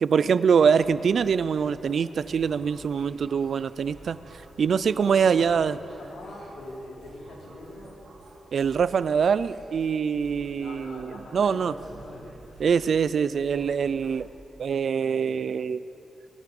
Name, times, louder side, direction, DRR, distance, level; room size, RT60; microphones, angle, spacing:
voice 1, 0.0-4.2 4.6-5.8 8.5-11.7 12.6-14.3 14.6-15.8, right 6 dB, 60° right, 16 dB, 0.4 m, -24 dB
sound 1, 0.7-14.3, right 2 dB, 80° right, 2.9 m, -50 dB
voice 2, 5.0-8.0 10.5-12.7, left 1 dB, 85° left, -3 dB, 3.5 m, -43 dB
23.5 x 11.5 x 5.3 m, 3.0 s
wide cardioid pair, 150°, 0 cm